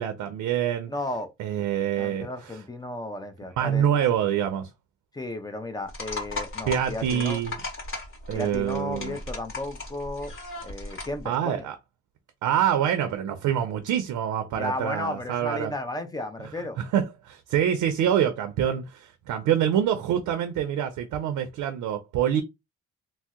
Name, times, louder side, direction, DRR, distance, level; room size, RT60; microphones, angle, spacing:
voice 1, 0.0-0.9 1.4-2.6 3.6-4.7 6.7-7.6 8.3-9.2 11.2-11.7 12.4-15.7 16.9-22.4, right 9 dB, 85° right, 0.6 m, -26 dB
voice 2, 0.9-1.3 2.0-4.0 5.1-7.4 8.3-10.3 10.6-11.7 14.5-16.8, left 2 dB, 15° left, 0.6 m, -34 dB
sound 1, 5.9-11.2, left 3 dB, 40° left, 1.3 m, -37 dB
2.7 x 2.0 x 3.6 m
cardioid pair, 90°, 30 cm